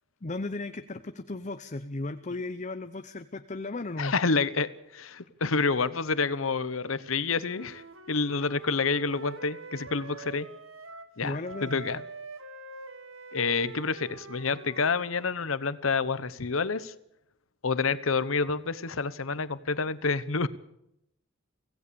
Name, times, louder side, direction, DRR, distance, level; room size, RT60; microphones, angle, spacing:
voice 1, 0.2-4.1 11.2-11.8, left 2 dB, 35° left, 10 dB, 0.8 m, -35 dB
voice 2, 4.0-10.5 11.2-12.0 13.3-16.9 17.6-20.5, left 4 dB, 80° left, 15 dB, 1.0 m, -28 dB
Wind instrument woodwind instrument, 7.4-11.1 11.4-15.4, right 3 dB, 80° right, 1.8 m, -45 dB
25.0 x 17.0 x 7.0 m, 0.81 s
head